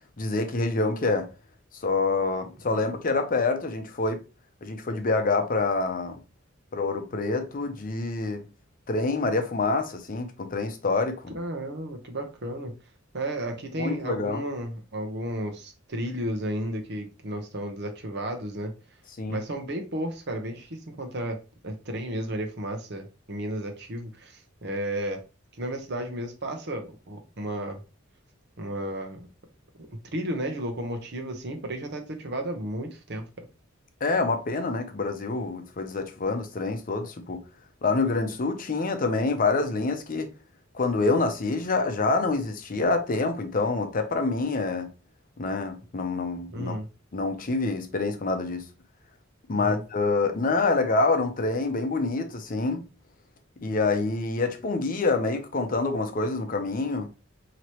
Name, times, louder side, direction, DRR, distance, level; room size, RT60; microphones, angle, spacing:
voice 1, 0.2-1.3 1.8-4.2 4.6-6.2 6.7-8.4 8.9-11.2 13.8-14.4 19.2-19.4 34.0-37.4 37.8-40.3 40.7-44.9 45.4-46.8 47.1-48.6 49.5-52.8 53.6-57.1, left 3 dB, 40° left, 0.6 m, -26 dB
voice 2, 11.3-12.7 13.1-18.7 19.3-21.4 21.6-25.2 25.6-27.8 28.6-29.3 30.1-33.2 46.5-46.9 49.5-49.8, right 1 dB, 55° right, 0.8 m, -33 dB
4.6 x 2.9 x 2.9 m
head